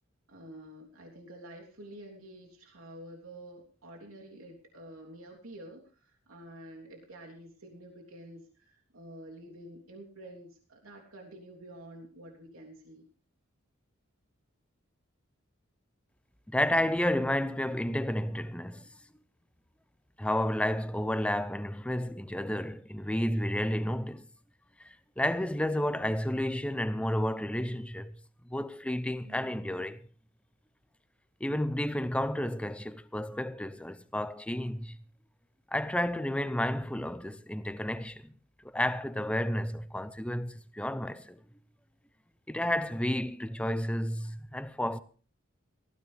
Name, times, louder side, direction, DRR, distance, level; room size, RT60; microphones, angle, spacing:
voice 1, 0.3-13.1 29.2-29.7, right 1 dB, 90° right, 3.4 m, -49 dB
voice 2, 16.5-18.9 20.2-24.3 24.8-28.1 28.5-30.0 31.4-35.0 35.7-38.3 38.7-41.4 42.5-45.0, left 1 dB, 5° left, 0.7 m, -31 dB
19.0 x 15.0 x 3.5 m
head